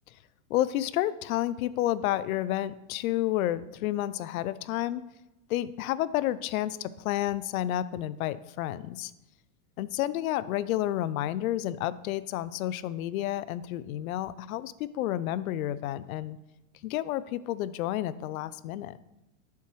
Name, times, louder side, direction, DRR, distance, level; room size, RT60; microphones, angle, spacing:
voice 1, 0.5-5.0 5.5-9.1 9.8-16.4 16.8-18.9, left 13 dB, 80° left, 17 dB, 0.5 m, -30 dB
7.4 x 7.0 x 3.1 m, 0.94 s
supercardioid pair, 150°, 42 cm